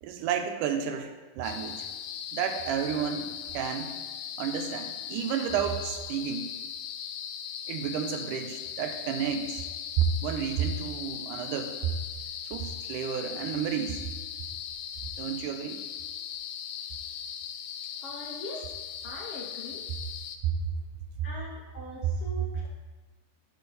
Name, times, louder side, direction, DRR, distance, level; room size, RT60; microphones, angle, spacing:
voice 1, 0.0-1.9 2.3-4.0 4.4-6.5 7.7-9.6 10.0-11.9 12.5-14.0 15.2-15.8 20.4-20.5, right 8 dB, 85° right, 6 dB, 2.2 m, -31 dB
sound 1, 1.4-20.4, left 9 dB, 90° left, 2.3 m, -39 dB
voice 2, 18.0-18.7 19.0-19.8 21.2-22.7, left 1 dB, 70° left, -2 dB, 1.4 m, -41 dB
11.5 x 5.2 x 4.0 m, 1.3 s
omnidirectional pair, 3.7 m